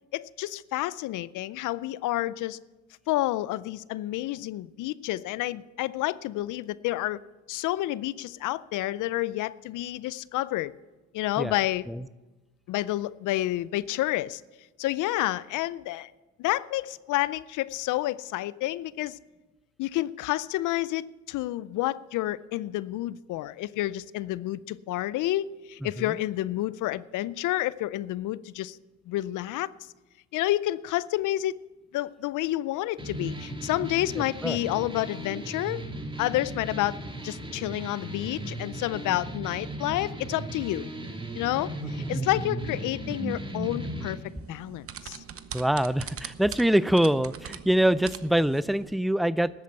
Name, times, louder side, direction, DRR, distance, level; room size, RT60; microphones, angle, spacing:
voice 1, 0.1-2.6 3.1-7.2 7.5-10.7 11.1-11.8 12.7-14.4 14.8-16.1 16.4-19.2 19.8-28.8 29.1-29.7 30.3-31.5 31.9-35.8 36.2-37.0 37.2-40.9 41.3-44.2 44.5-45.2, left 16 dB, 85° left, 19 dB, 0.5 m, -29 dB
voice 2, 25.8-26.2 34.4-34.6 42.1-42.2 45.5-49.6, right 1 dB, ahead, 18 dB, 0.3 m, -24 dB
sound 1, 33.0-44.1, right 1 dB, 15° right, 2.0 m, -36 dB
sound 2, 44.3-48.9, right 8 dB, 50° right, 0.9 m, -42 dB
13.0 x 8.6 x 7.8 m, 1.2 s
cardioid pair, 90°, 30 cm